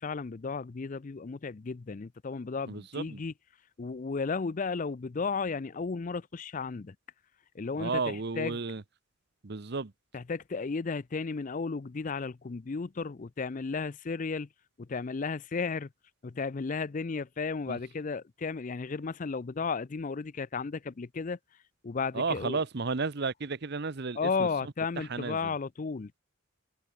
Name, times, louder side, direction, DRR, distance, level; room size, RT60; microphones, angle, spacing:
voice 1, 0.0-3.3 3.8-7.0 7.5-8.6 10.1-14.5 14.8-15.9 16.2-21.4 21.8-22.6 24.2-26.2, left 4 dB, 40° left, 0.5 m, -34 dB
voice 2, 2.7-3.2 7.8-8.8 9.4-9.9 17.7-17.8 22.1-25.5, right 4 dB, 55° right, 0.8 m, -33 dB
head